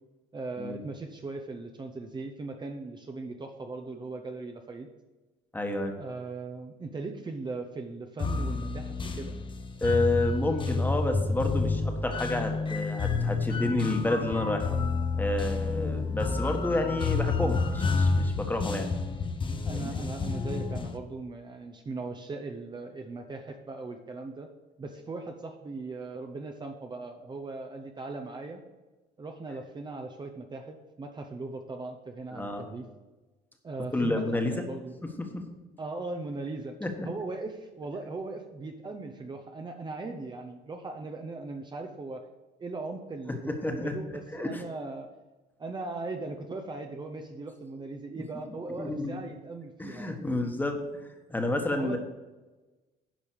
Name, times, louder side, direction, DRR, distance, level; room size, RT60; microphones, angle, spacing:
voice 1, 0.3-4.9 6.0-9.4 15.8-16.1 19.7-24.5 24.8-28.6 29.2-32.9 33.6-35.0 35.8-36.8 37.0-42.3 42.6-45.1 45.6-50.1 51.7-52.0, right 3 dB, 25° right, 4 dB, 0.9 m, -39 dB
voice 2, 5.5-5.9 9.8-14.8 15.2-18.9 19.8-19.9 32.3-32.6 33.9-34.6 35.2-35.5 36.8-37.1 43.5-44.0 44.3-44.6 48.6-49.2 49.8-50.8 51.3-52.0, left 2 dB, 10° left, 4 dB, 1.5 m, -30 dB
sound 1, 8.2-21.0, left 4 dB, 30° left, 0.9 m, -29 dB
10.5 x 5.4 x 6.4 m, 1.2 s
cardioid pair, 110°, 17 cm